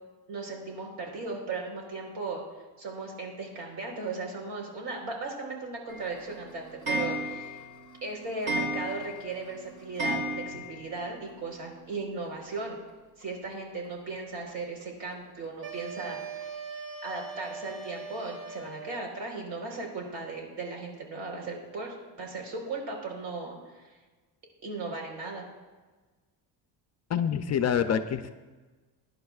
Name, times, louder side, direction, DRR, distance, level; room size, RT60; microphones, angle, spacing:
voice 1, 0.3-2.4 2.8-7.6 8.0-12.8 13.2-16.6 17.0-23.9 24.6-25.4, right 3 dB, 70° right, 1 dB, 4.1 m, -37 dB
Clock, 5.9-11.0 11.3-11.4 11.6-11.7 11.9-12.0 13.2-13.3 13.8-13.9 14.5-14.6 15.1-15.2 15.8-15.9 16.4-16.5, right 1 dB, 45° right, 3.6 m, -34 dB
sound 1, 15.6-19.1, right 5 dB, 85° right, 2.7 m, -40 dB
voice 2, 27.1-28.3, left 8 dB, 35° left, 9 dB, 0.5 m, -26 dB
22.5 x 10.5 x 2.4 m, 1.3 s
cardioid pair, 150°, 44 cm